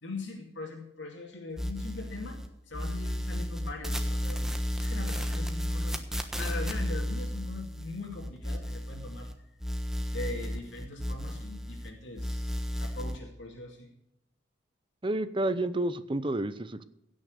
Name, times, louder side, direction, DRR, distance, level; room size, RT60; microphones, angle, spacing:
voice 1, 0.0-2.4 2.7-4.5 4.8-6.0 6.3-9.3 10.1-13.9, left 3 dB, 80° left, 0 dB, 2.5 m, -41 dB
sound 1, 1.6-2.5 2.7-9.3 9.6-11.9 12.2-13.2, equal, 5° right, 1.2 m, -33 dB
voice 2, 15.0-16.8, right 1 dB, 25° right, 13 dB, 0.7 m, -30 dB
16.5 x 6.4 x 6.7 m, 0.79 s
head